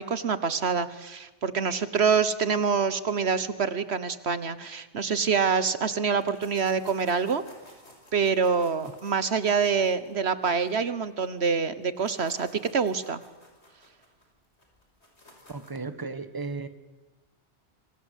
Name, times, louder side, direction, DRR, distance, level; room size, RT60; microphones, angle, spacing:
voice 1, 0.0-7.4 8.1-13.2, right 5 dB, 70° right, 14 dB, 1.4 m, -26 dB
sound 1, 6.2-11.5 11.8-15.9, left 1 dB, 75° left, 6.1 m, -54 dB
voice 2, 15.5-16.7, right 4 dB, 20° right, 11 dB, 1.4 m, -35 dB
27.5 x 25.0 x 8.3 m, 1.1 s
omnidirectional pair, 1.1 m